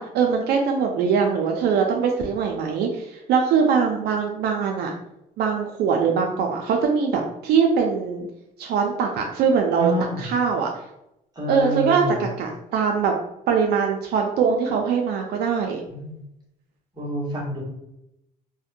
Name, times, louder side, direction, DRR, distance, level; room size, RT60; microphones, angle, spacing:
voice 1, 0.0-4.9 5.4-8.3 8.6-9.9 10.2-10.7 11.5-13.1 13.5-15.8, right 6 dB, 75° right, 2 dB, 0.4 m, -22 dB
voice 2, 9.8-10.2 11.3-12.2 15.9-16.2 17.0-17.6, left 1 dB, 25° right, -5 dB, 1.2 m, -28 dB
2.6 x 2.1 x 2.5 m, 0.84 s
cardioid pair, 110°, 17 cm